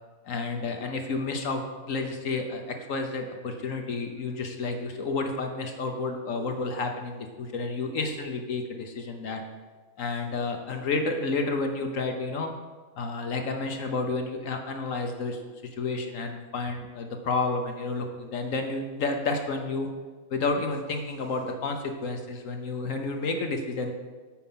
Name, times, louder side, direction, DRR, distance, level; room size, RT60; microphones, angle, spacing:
voice 1, 0.2-9.4 10.0-12.5 13.0-15.4 15.8-19.9 20.3-23.9, left 3 dB, 55° left, 4 dB, 0.9 m, -30 dB
8.9 x 7.1 x 5.6 m, 1.4 s
omnidirectional pair, 2.3 m